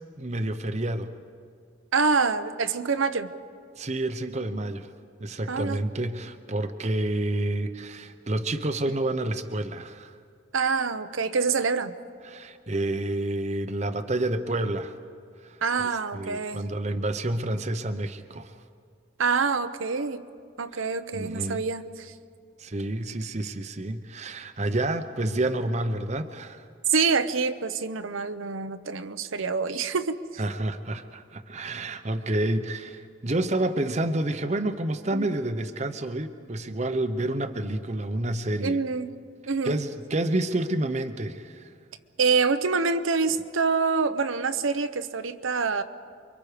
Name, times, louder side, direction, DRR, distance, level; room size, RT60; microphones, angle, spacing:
voice 1, 0.2-1.1 3.8-4.9 5.2-10.2 12.2-15.0 15.4-15.6 16.1-18.5 20.7-20.9 21.1-21.6 22.6-26.7 30.4-38.8 39.6-41.7, right 1 dB, 35° right, 8 dB, 0.8 m, -29 dB
voice 2, 1.9-3.3 5.5-5.8 10.5-11.9 15.6-16.6 19.2-20.2 20.6-22.1 26.9-30.2 35.1-35.3 38.6-39.2 39.5-39.8 42.2-45.8, right 4 dB, 80° right, 9 dB, 0.8 m, -26 dB
28.5 x 23.5 x 5.0 m, 2.3 s
head